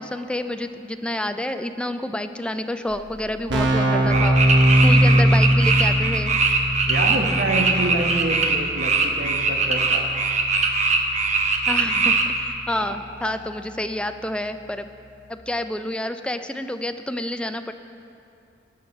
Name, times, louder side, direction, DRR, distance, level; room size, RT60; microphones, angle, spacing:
voice 1, 0.0-4.4 4.8-6.4 11.7-14.8 15.3-17.7, left 1 dB, 5° left, 8 dB, 0.4 m, -29 dB
Keyboard (musical), 2.9-3.0 3.2-13.8, equal, 90° right, 1.4 m, -23 dB
sound 1, 4.1-12.2, right 4 dB, 40° right, 0.9 m, -21 dB
voice 2, 6.9-10.1 12.7-13.0 13.2-13.3, right 2 dB, 65° right, 2 dB, 1.3 m, -27 dB
18.0 x 6.4 x 5.4 m, 2.6 s
head